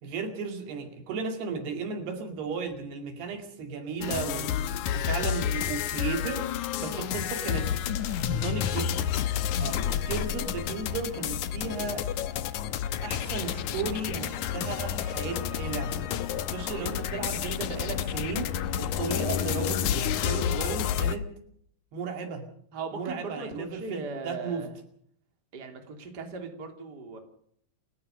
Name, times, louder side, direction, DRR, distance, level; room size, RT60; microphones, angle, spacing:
voice 1, 0.0-4.6 4.9-6.5 6.8-9.1 9.9-12.0 13.0-16.0 16.3-18.5 18.8-21.3 21.9-22.4 22.9-24.7, right 5 dB, 75° right, 6 dB, 4.4 m, -35 dB
sound 1, 4.0-21.2, left 9 dB, 75° left, 1.7 m, -30 dB
voice 2, 22.7-24.7 25.5-27.2, right 4 dB, 25° right, 4 dB, 3.2 m, -38 dB
29.0 x 14.0 x 6.6 m, 0.66 s
omnidirectional pair, 4.8 m